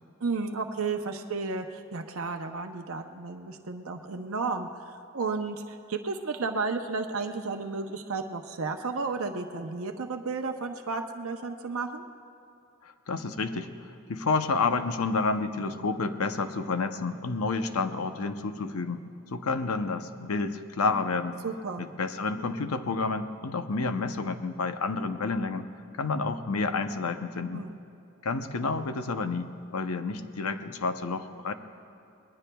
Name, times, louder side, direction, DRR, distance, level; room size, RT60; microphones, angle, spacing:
voice 1, 0.2-12.0 21.4-21.8 27.5-27.8, right 4 dB, 75° right, 4 dB, 0.7 m, -33 dB
voice 2, 12.8-13.7 14.1-19.0 19.3-21.4 21.8-25.7 26.0-27.6 28.2-31.5, left 3 dB, 90° left, 9 dB, 0.7 m, -30 dB
25.0 x 20.0 x 2.3 m, 2.6 s
head